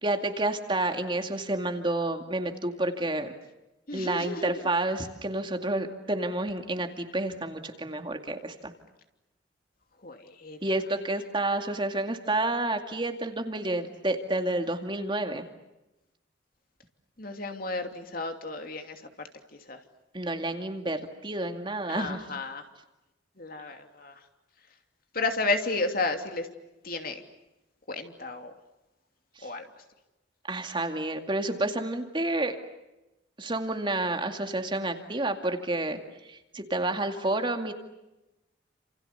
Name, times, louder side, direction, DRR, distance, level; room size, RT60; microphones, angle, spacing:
voice 1, 0.0-3.3 3.9-8.7 10.6-15.4 20.1-22.2 29.4-29.5 30.5-32.6 33.4-37.7, right 2 dB, 25° right, 5 dB, 2.3 m, -30 dB
voice 2, 3.9-4.5 10.0-10.6 17.2-19.0 19.7-19.8 21.9-22.6 23.4-24.1 25.1-26.5 26.8-27.2 27.9-28.5 29.4-29.6, left 3 dB, 50° left, 5 dB, 2.9 m, -32 dB
30.0 x 28.0 x 6.9 m, 0.98 s
head